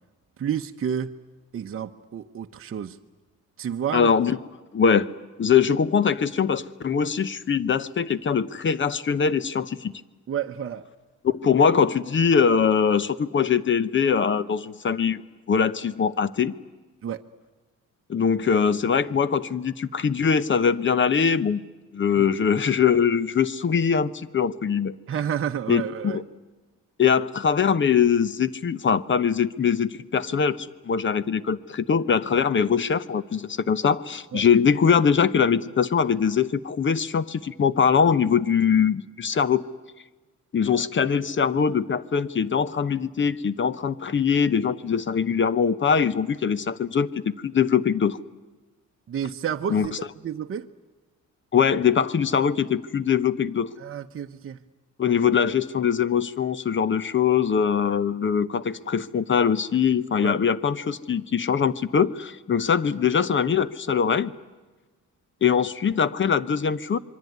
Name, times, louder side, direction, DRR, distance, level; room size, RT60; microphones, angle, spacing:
voice 1, 0.4-1.1 1.5-3.0 3.6-4.1 10.3-10.8 17.0-17.2 25.1-26.2 34.3-34.4 49.1-49.9 50.2-50.7 53.8-54.6 60.2-60.4, right 8 dB, 45° right, 4 dB, 0.9 m, -30 dB
voice 2, 3.9-4.4 4.7-5.1 5.4-9.9 11.2-15.2 15.5-16.5 18.1-21.6 21.9-24.9 25.7-26.2 27.0-39.6 40.5-48.2 49.7-49.9 51.5-53.7 55.0-64.3 65.4-67.0, left 7 dB, 40° left, 17 dB, 1.0 m, -22 dB
26.5 x 23.0 x 9.4 m, 1.2 s
cardioid pair, 125°, 32 cm